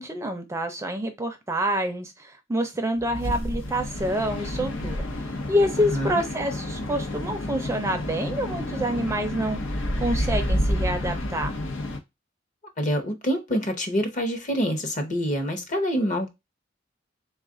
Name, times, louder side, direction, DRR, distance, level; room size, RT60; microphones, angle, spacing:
voice 1, 0.0-9.6 10.0-11.5, equal, 15° right, 0.4 m, -27 dB
sound 1, 3.0-12.0, left 1 dB, 85° left, 0.8 m, -29 dB
voice 2, 5.8-6.2 12.8-16.3, equal, 40° left, 0.8 m, -26 dB
3.5 x 2.4 x 3.6 m
head